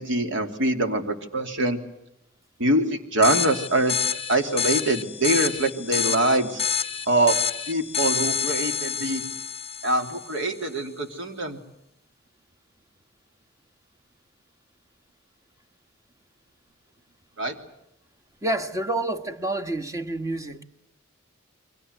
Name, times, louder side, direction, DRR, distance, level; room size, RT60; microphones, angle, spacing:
voice 1, 0.0-1.8 2.6-6.6 7.1-7.4 7.7-9.2 9.8-11.6 17.4-17.6, right 1 dB, 60° right, 2.9 m, -24 dB
sound 1, 3.2-10.4, left 7 dB, 30° left, 1.0 m, -28 dB
voice 2, 18.4-20.6, right 2 dB, 15° right, 1.4 m, -28 dB
29.0 x 24.0 x 8.0 m
head